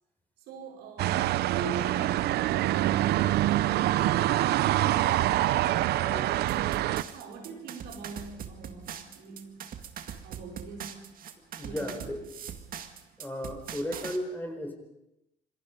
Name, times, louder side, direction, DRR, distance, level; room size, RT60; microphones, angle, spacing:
voice 1, 0.5-2.3 7.1-9.7 10.2-11.1 11.6-12.1, right 4 dB, 90° right, 0 dB, 5.3 m, -42 dB
sound 1, 1.0-7.0, right 14 dB, 75° right, 0.7 m, -25 dB
voice 2, 6.0-6.3 11.6-12.2 13.2-14.7, left 1 dB, 10° left, 4 dB, 4.6 m, -35 dB
sound 2, 6.5-14.2, right 8 dB, 55° right, 2.0 m, -41 dB
26.5 x 21.5 x 5.3 m, 0.88 s
cardioid pair, 110°, 17 cm